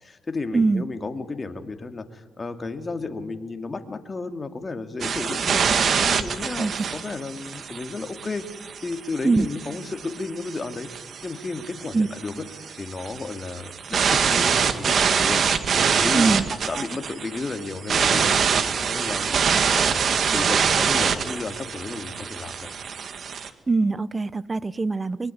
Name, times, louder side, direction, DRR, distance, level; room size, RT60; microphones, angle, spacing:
voice 1, 0.0-5.6 6.1-10.9 11.2-15.4 15.7-16.3 16.7-22.7, left 3 dB, 30° left, 6 dB, 2.7 m, -33 dB
voice 2, 0.5-0.8 6.6-6.9 9.2-9.5 11.9-12.1 16.2-16.5 16.7-16.9 23.7-25.3, right 3 dB, 25° right, 18 dB, 1.0 m, -22 dB
sound 1, 5.0-23.5, right 6 dB, 55° right, 2.0 m, -25 dB
23.5 x 23.0 x 9.6 m, 1.3 s
cardioid pair, 90°, 0 cm